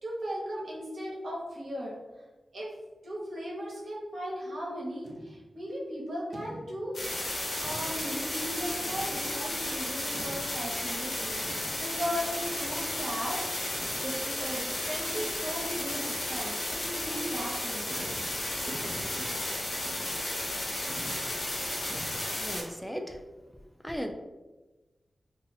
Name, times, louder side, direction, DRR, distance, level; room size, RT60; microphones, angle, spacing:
voice 1, 0.0-2.0 2.5-2.7 3.0-7.0 7.4-13.8 14.0-17.9 18.6-19.3, equal, 70° right, -4 dB, 1.1 m, -37 dB
sound 1, 5.0-5.6 6.3-7.0 7.6-8.2 8.9-9.4 10.1-10.8 11.4-12.0 12.6-13.0 13.7-14.6 15.0-15.6 15.9-16.0 16.6-16.8 17.3-17.4 17.9-19.5 19.9-20.3 20.6-20.7 20.9-22.2, right 1 dB, 50° right, 0.5 m, -47 dB
sound 2, 6.9-22.6, left 1 dB, 60° left, 1.1 m, -33 dB
voice 2, 22.4-23.1 23.8-24.1, equal, ahead, 4 dB, 0.3 m, -36 dB
2.6 x 2.5 x 4.0 m, 1.2 s
wide cardioid pair, 125°, 0 cm